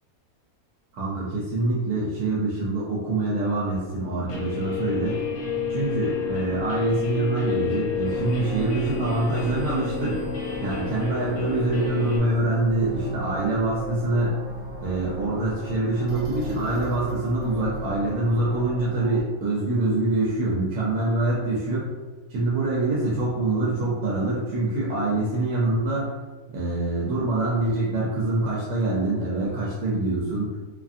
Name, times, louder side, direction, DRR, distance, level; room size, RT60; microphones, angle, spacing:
voice 1, 0.9-5.2 5.7-10.2 10.6-14.4 14.8-21.9 22.3-26.1 26.5-30.5, right 2 dB, 85° right, -5 dB, 1.1 m, -25 dB
Guitar, 4.3-12.2, left 5 dB, 80° left, 1.1 m, -30 dB
sound 1, 8.0-19.2, right 1 dB, 50° right, 0.6 m, -36 dB
2.7 x 2.4 x 2.5 m, 1.2 s
omnidirectional pair, 1.6 m